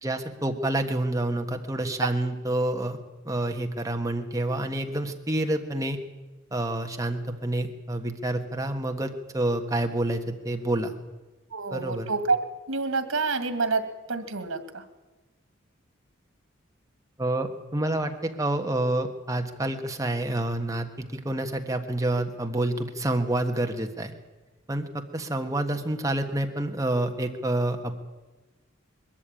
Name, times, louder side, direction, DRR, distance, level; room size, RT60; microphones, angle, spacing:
voice 1, 0.0-3.0 3.2-6.0 6.5-10.9 11.7-12.1 17.2-24.1 24.7-27.9, right 1 dB, 15° right, 5 dB, 1.4 m, -28 dB
voice 2, 11.5-12.4 12.7-14.8, right 4 dB, 90° right, 10 dB, 2.1 m, -28 dB
22.0 x 13.5 x 9.0 m, 1.2 s
head